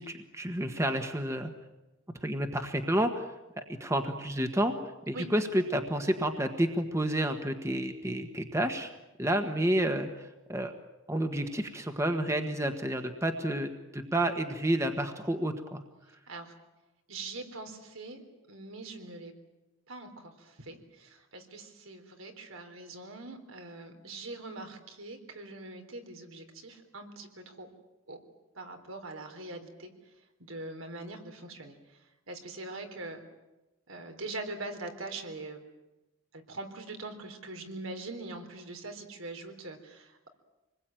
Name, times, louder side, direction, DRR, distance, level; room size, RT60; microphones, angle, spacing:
voice 1, 0.0-1.5 2.2-3.3 3.6-4.8 5.1-8.9 9.2-10.7 11.1-15.8, right 1 dB, 15° right, 6 dB, 1.4 m, -30 dB
voice 2, 17.1-18.2 18.5-19.3 19.9-27.7 28.1-28.2 28.5-29.9 30.4-31.8 32.3-33.2 33.9-35.6 36.3-40.3, right 2 dB, 80° right, 5 dB, 3.9 m, -42 dB
26.5 x 21.0 x 9.1 m, 1.0 s
head